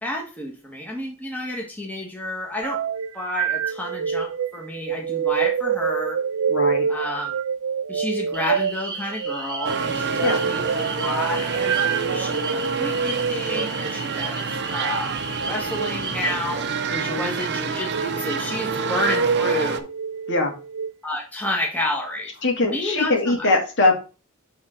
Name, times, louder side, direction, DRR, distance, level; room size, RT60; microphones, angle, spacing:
voice 1, 0.0-2.8 3.1-6.2 6.9-7.4 7.9-14.4 14.7-15.1 15.5-16.6 17.0-19.9 21.0-22.3 22.6-23.5, left 1 dB, 10° left, -2 dB, 1.5 m, -30 dB
sound 1, 2.6-12.6 13.3-13.6 15.6-15.9 16.7-17.2 17.8-18.1 18.9-19.4 19.9-20.9, right 7 dB, 80° right, 0.4 m, -27 dB
voice 2, 6.5-6.9 10.2-10.4 16.9-17.3 20.3-20.5 22.4-23.9, left 2 dB, 60° left, 2 dB, 2.2 m, -21 dB
sound 2, 8.3-16.3, right 3 dB, 20° right, 1.2 m, -35 dB
sound 3, 9.6-19.8, right 5 dB, 55° right, 0.7 m, -26 dB
7.6 x 3.7 x 4.4 m, 0.33 s
head